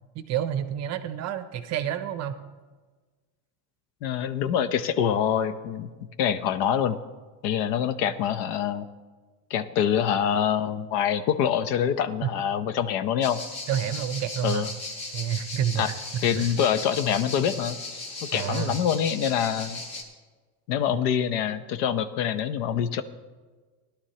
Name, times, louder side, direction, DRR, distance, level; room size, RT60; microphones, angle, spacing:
voice 1, 0.1-2.3 12.2-12.3 13.7-14.7 15.1-16.5 18.3-18.8, right 10 dB, 35° right, 11 dB, 0.6 m, -29 dB
voice 2, 4.0-5.9 6.2-7.0 7.4-8.9 9.5-13.4 14.4-14.7 15.8-15.9 16.2-17.8 18.2-19.8 20.7-23.0, left 8 dB, 75° left, 13 dB, 0.9 m, -25 dB
sound 1, 13.2-20.0, left 2 dB, 55° left, 2.2 m, -37 dB
17.5 x 11.5 x 2.9 m, 1.4 s
supercardioid pair, 140°, 48 cm